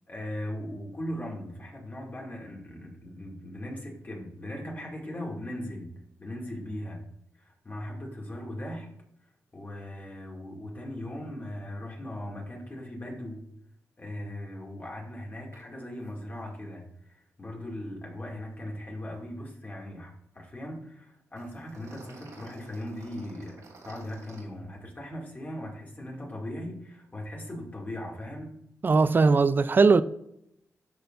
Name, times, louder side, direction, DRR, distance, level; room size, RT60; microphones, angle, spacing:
voice 1, 0.1-5.9 6.2-7.0 7.4-8.9 9.5-13.4 14.0-28.6, left 1 dB, 30° left, 2.4 m, -39 dB
sound 1, 15.5-15.6 15.9-16.1 16.4-16.5 21.4-24.4, right 3 dB, 85° right, 3.1 m, -51 dB
voice 2, 28.8-30.0, right 4 dB, 40° right, 0.4 m, -19 dB
13.0 x 4.6 x 2.6 m
cardioid pair, 85°, 6 cm